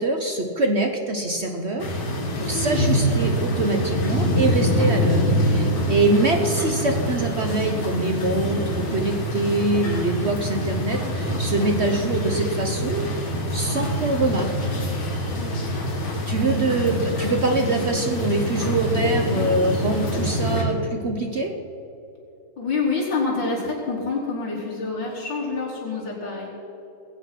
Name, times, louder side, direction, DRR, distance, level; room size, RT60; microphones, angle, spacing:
voice 1, 0.0-1.9 2.4-14.7 16.3-21.5, right 2 dB, 65° right, 4 dB, 0.6 m, -24 dB
sound 1, 1.8-20.6, equal, 70° left, 3.2 m, -25 dB
voice 2, 15.4-15.7 22.6-26.5, left 4 dB, 55° left, -5 dB, 4.2 m, -27 dB
20.0 x 8.4 x 5.8 m, 2.9 s
omnidirectional pair, 2.4 m